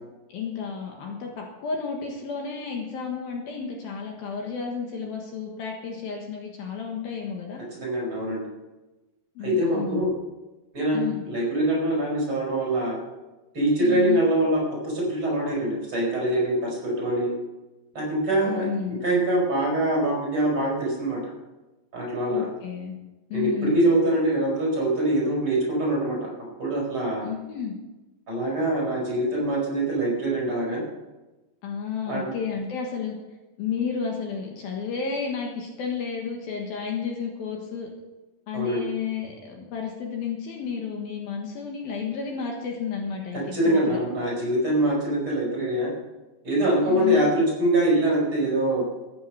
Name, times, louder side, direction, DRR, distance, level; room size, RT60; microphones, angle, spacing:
voice 1, 0.3-7.6 9.4-10.1 10.9-11.2 13.8-14.2 18.5-19.0 22.3-23.0 23.3-23.8 27.2-27.7 31.6-33.2 33.6-37.9 38.5-44.0 46.8-47.3, left 6 dB, 65° left, 1 dB, 3.0 m, -32 dB
voice 2, 7.8-8.5 9.4-10.1 10.7-13.0 13.5-17.3 17.9-18.7 19.0-21.2 21.9-22.5 23.3-26.3 26.6-27.3 28.3-30.8 32.1-32.3 38.5-38.8 43.5-45.9 46.4-48.8, right 1 dB, 30° right, -4 dB, 5.7 m, -24 dB
14.0 x 9.5 x 6.1 m, 1.1 s
omnidirectional pair, 4.9 m